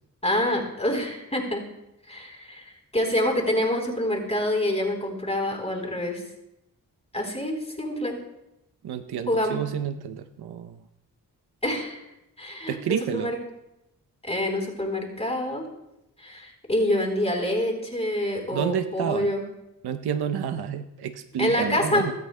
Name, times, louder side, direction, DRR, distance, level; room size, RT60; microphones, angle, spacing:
voice 1, 0.2-1.6 2.1-6.2 7.1-8.2 9.3-9.6 11.6-12.0 12.4-13.4 14.2-15.7 16.2-19.4 21.4-22.1, left 1 dB, 15° left, 2 dB, 3.8 m, -26 dB
voice 2, 8.8-10.9 12.7-13.3 18.5-19.3 19.8-22.1, right 9 dB, 85° right, 7 dB, 0.7 m, -29 dB
18.5 x 9.2 x 2.2 m, 0.88 s
supercardioid pair, 40°, 38 cm